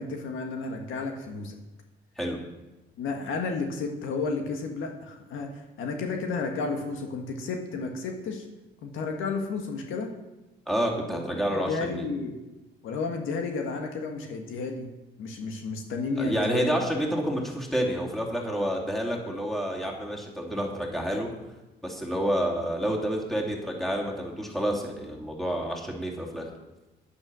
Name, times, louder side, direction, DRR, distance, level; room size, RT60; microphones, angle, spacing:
voice 1, 0.0-1.6 3.0-8.5 8.8-10.1 11.1-11.2 11.5-12.4 12.8-14.9 15.2-16.7, left 4 dB, 85° left, 3 dB, 1.6 m, -32 dB
voice 2, 10.7-12.0 16.2-21.3 21.8-26.5, equal, ahead, -2 dB, 2.8 m, -29 dB
10.0 x 8.6 x 6.2 m, 1.0 s
cardioid pair, 90°, 20 cm